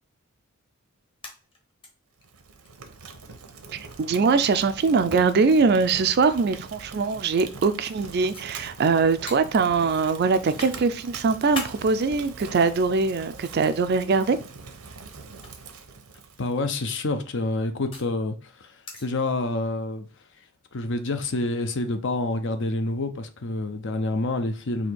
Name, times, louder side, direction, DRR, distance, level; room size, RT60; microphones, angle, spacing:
sound 1, 1.1-1.9 2.2-2.3 2.6-2.7 3.8-4.1 5.1-5.2 6.0-7.4 7.8-8.0 8.3-8.4 9.3-9.4 9.9-10.8 11.2-11.8 12.6-13.4 14.4-14.6 15.3-15.5 16.8-18.1 18.8-19.1, left 2 dB, 25° left, 1.0 m, -39 dB
Fire, 2.2-16.6, right 4 dB, 90° right, 0.8 m, -43 dB
voice 1, 3.7-14.4, right 4 dB, 50° right, 0.4 m, -22 dB
voice 2, 16.4-20.1 20.7-24.9, left 2 dB, 55° left, 0.6 m, -28 dB
4.2 x 2.8 x 4.5 m
head